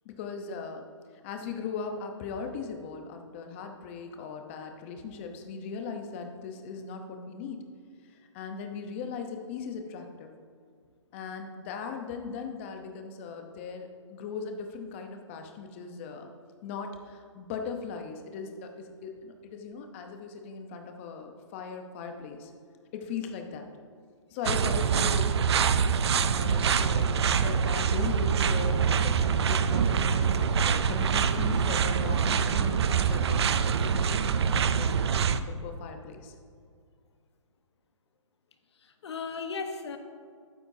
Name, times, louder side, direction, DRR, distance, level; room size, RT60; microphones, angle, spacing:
voice 1, 0.0-0.8 1.2-7.6 8.1-10.3 11.1-16.3 16.6-22.5 22.9-23.7 24.3-25.3 26.2-33.5 33.8-36.3, left 5 dB, 25° left, 5 dB, 0.8 m, -38 dB
sound 1, 24.4-35.4, right 6 dB, 55° right, 0.5 m, -25 dB
voice 2, 25.4-25.9 38.7-40.0, left 5 dB, 55° left, 6 dB, 1.1 m, -38 dB
12.0 x 9.6 x 2.7 m, 2.1 s
hypercardioid pair, 160°, 16 cm